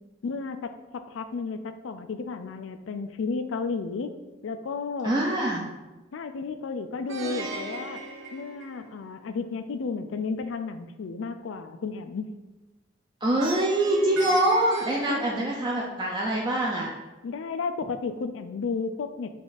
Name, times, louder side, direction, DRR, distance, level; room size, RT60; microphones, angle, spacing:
voice 1, 0.2-0.6 1.1-4.1 4.4-5.1 6.1-8.0 8.3-12.3 15.1-15.4 17.2-19.3, left 4 dB, 85° left, 9 dB, 0.4 m, -32 dB
voice 2, 5.0-5.7 13.2-16.9, right 1 dB, 25° right, -2 dB, 0.4 m, -24 dB
Plucked string instrument, 7.1-9.2 13.4-16.0, right 2 dB, 75° right, 0.6 m, -37 dB
5.0 x 2.5 x 4.0 m, 1.1 s
head